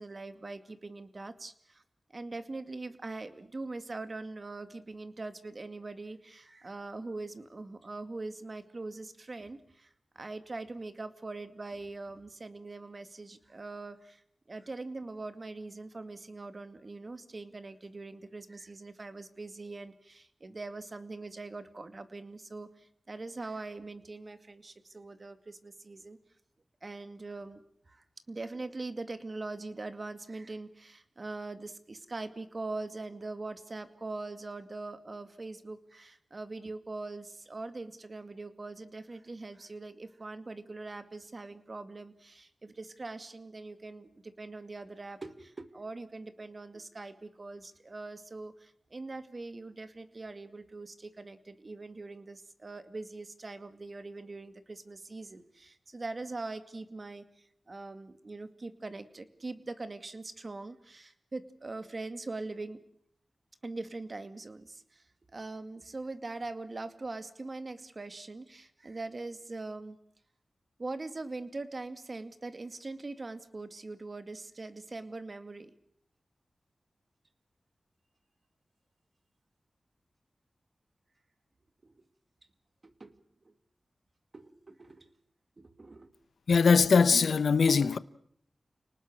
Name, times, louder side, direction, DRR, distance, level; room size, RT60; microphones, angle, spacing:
voice 1, 0.0-1.8 2.1-9.9 10.2-14.2 14.5-26.2 26.8-27.6 27.9-62.8 63.6-65.0 65.3-70.0 70.8-75.7 81.8-81.9 82.8-83.2 83.5-83.6 84.3-85.1 85.6-86.1, right 3 dB, 40° right, 2.2 m, -42 dB
voice 2, 86.5-88.0, left 5 dB, 85° left, 0.9 m, -22 dB
29.5 x 19.0 x 6.4 m
wide cardioid pair, 80°, 0 cm